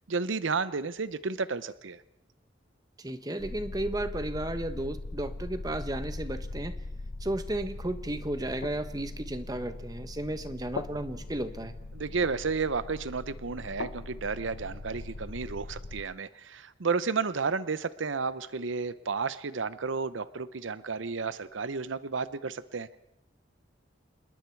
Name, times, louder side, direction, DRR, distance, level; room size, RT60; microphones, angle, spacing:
voice 1, 0.1-2.0 11.9-23.0, right 4 dB, 90° right, 15 dB, 0.8 m, -32 dB
voice 2, 3.0-6.8 7.2-11.7, right 1 dB, 20° right, 10 dB, 1.1 m, -34 dB
sound 1, 3.4-16.0, left 2 dB, 80° left, 1.1 m, -40 dB
26.5 x 21.0 x 4.6 m, 0.83 s
head